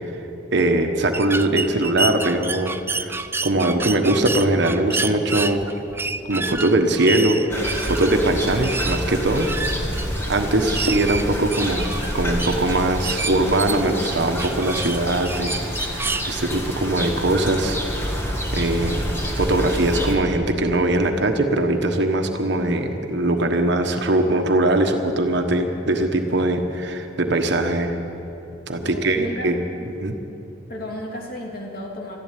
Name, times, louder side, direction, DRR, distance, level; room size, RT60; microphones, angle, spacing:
voice 1, 0.5-5.6 6.3-7.4 7.9-9.5 10.3-18.2 18.5-19.0 19.3-28.0 28.7-29.6 29.9-30.1, right 1 dB, 65° right, 5 dB, 1.2 m, -21 dB
sound 1, 1.1-16.3, right 3 dB, 15° right, 0.4 m, -29 dB
sound 2, 7.5-20.1, equal, 15° left, 1.7 m, -28 dB
voice 2, 28.8-29.5 29.8-29.9 30.7-32.2, left 1 dB, 50° left, -1 dB, 2.8 m, -33 dB
13.5 x 11.0 x 9.9 m, 2.8 s
head